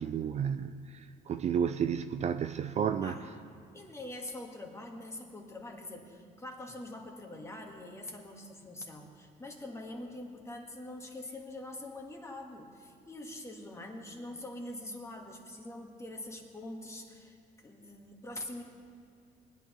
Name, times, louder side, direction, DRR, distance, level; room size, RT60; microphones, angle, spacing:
voice 1, 0.0-3.2, right 8 dB, 40° right, 9 dB, 0.4 m, -32 dB
voice 2, 3.0-3.4 3.7-18.6, left 1 dB, 15° left, 2 dB, 1.6 m, -44 dB
20.0 x 11.0 x 3.1 m, 2.4 s
cardioid pair, 110°, 17 cm